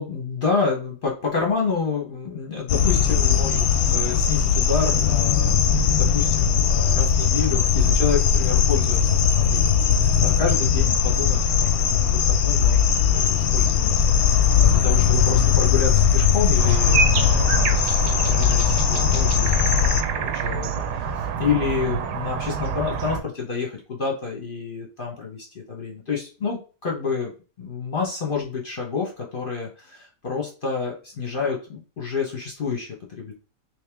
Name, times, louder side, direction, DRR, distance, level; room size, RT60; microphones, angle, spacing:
voice 1, 0.0-5.7 6.0-19.5 19.8-27.3 27.6-33.3, left 5 dB, 45° left, -1 dB, 0.8 m, -29 dB
sound 1, 2.7-20.0, left 7 dB, 70° left, 0.9 m, -19 dB
sound 2, 16.6-23.2, right 6 dB, 75° right, 1.1 m, -27 dB
3.4 x 2.9 x 3.4 m, 0.35 s
omnidirectional pair, 1.9 m